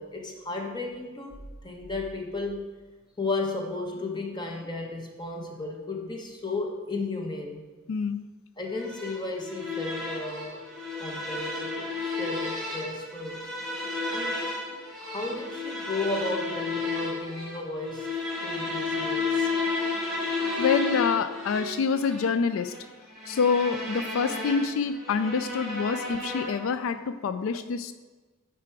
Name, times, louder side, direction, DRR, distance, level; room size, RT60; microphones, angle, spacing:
voice 1, 0.0-2.6 3.2-7.6 8.6-10.6 11.0-13.5 14.1-14.4 15.0-19.5, left 2 dB, 20° left, 1 dB, 1.1 m, -34 dB
voice 2, 7.9-8.2 20.6-22.7 23.3-27.9, left 5 dB, 80° left, 11 dB, 0.3 m, -26 dB
sound 1, 8.8-26.8, left 3 dB, ahead, 2.5 m, -32 dB
9.5 x 4.7 x 4.7 m, 1.3 s
head